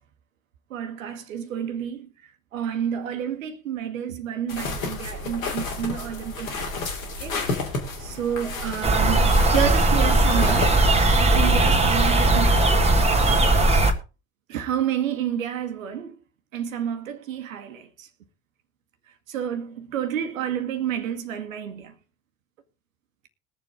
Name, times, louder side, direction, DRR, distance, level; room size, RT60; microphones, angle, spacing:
voice 1, 0.7-2.1 2.5-6.7 7.2-7.4 8.0-10.8 11.2-12.9 14.5-16.2 16.5-18.1 19.3-21.9, right 9 dB, 70° right, 1.6 m, -29 dB
sound 1, 4.5-11.0, left 3 dB, 75° left, 2.8 m, -32 dB
sound 2, 8.8-13.9, right 2 dB, 15° right, 2.0 m, -18 dB
21.0 x 7.3 x 3.7 m
figure-of-eight pair, 60°, 41 cm